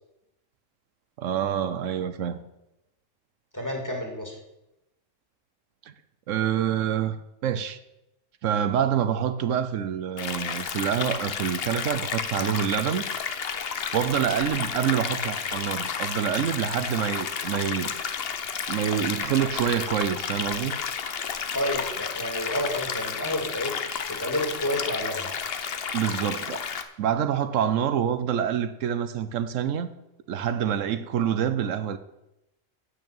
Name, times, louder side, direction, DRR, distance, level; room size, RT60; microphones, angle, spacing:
voice 1, 1.2-2.4 5.8-5.9 6.3-7.2 7.4-7.8 8.4-13.0 13.9-17.9 18.7-20.7 25.9-26.6 27.0-29.9 30.3-32.0, right 9 dB, 80° right, 1.0 m, -26 dB
voice 2, 3.5-4.4 21.5-23.9 24.2-25.3, left 1 dB, 15° left, 2.3 m, -30 dB
sound 1, 10.2-26.8, left 6 dB, 55° left, 1.0 m, -32 dB
9.6 x 6.3 x 8.7 m
omnidirectional pair, 1.3 m